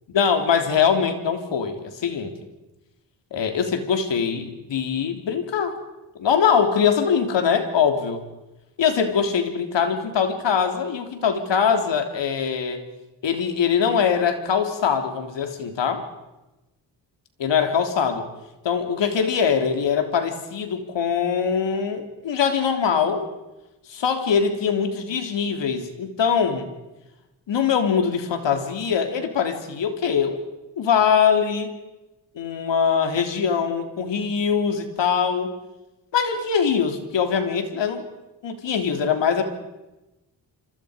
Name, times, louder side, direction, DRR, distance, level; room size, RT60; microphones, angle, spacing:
voice 1, 0.1-2.3 3.3-5.8 6.2-8.2 8.8-12.8 13.2-16.0 17.4-18.2 18.6-23.3 24.0-26.7 27.5-30.4 30.8-31.7 32.3-35.5 36.1-38.0 38.4-39.4, left 7 dB, 75° left, 6 dB, 3.3 m, -22 dB
28.0 x 25.5 x 5.1 m, 1.0 s
cardioid pair, 115°, 44 cm